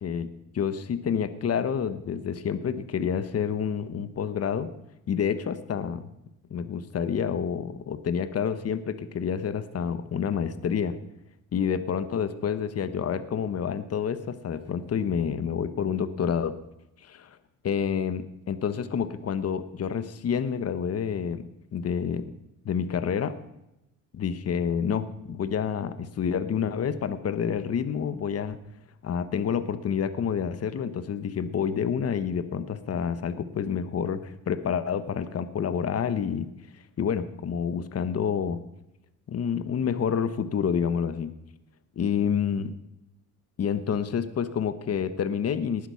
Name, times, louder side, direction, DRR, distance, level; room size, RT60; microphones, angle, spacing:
voice 1, 0.0-4.7 5.1-6.1 6.5-11.0 11.5-16.5 17.0-17.4 17.6-21.4 21.7-22.3 22.6-23.4 24.1-28.6 29.0-36.5 37.0-38.6 39.3-41.3 42.0-42.7 43.6-45.9, left 7 dB, 45° left, 12 dB, 1.2 m, -28 dB
19.0 x 11.0 x 5.8 m, 0.88 s
cardioid pair, 100°, 33 cm